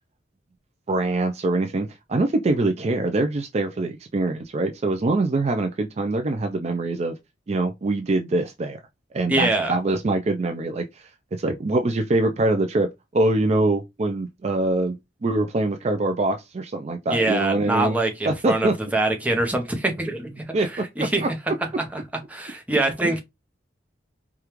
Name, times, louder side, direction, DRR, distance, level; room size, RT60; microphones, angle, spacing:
voice 1, 0.9-7.2 7.5-8.8 9.1-15.0 15.2-18.0 18.2-18.8 20.5-21.3 23.0-23.1, right 2 dB, 35° right, 0.4 m, -24 dB
voice 2, 9.3-9.7 17.1-20.3 21.0-21.2 21.9-22.0 22.3-23.2, right 2 dB, 10° right, 0.7 m, -24 dB
4.9 x 2.3 x 3.0 m
head